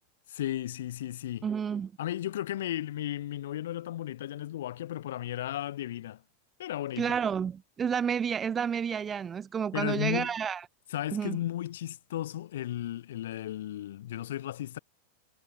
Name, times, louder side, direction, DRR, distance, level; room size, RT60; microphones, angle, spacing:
voice 1, 0.3-1.5 2.0-6.2 6.6-7.2 9.7-10.3 10.9-14.8, left 12 dB, 60° left, 2.2 m, -34 dB
voice 2, 1.4-1.9 7.0-10.6 11.1-11.4, right 7 dB, 20° right, 0.6 m, -30 dB
figure-of-eight pair, 90°, 0 cm